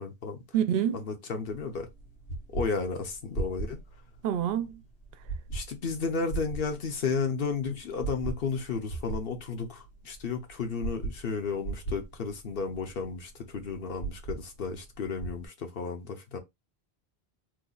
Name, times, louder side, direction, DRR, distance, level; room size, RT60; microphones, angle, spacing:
voice 1, 0.0-0.4 0.9-1.9 2.5-3.8 5.5-16.4, left 5 dB, 65° left, 1.0 m, -33 dB
voice 2, 0.5-1.0 4.2-4.8, right 9 dB, 70° right, 0.8 m, -26 dB
sound 1, 1.5-15.5, right 4 dB, 80° left, 1.5 m, -39 dB
3.0 x 2.4 x 3.8 m
omnidirectional pair, 1.1 m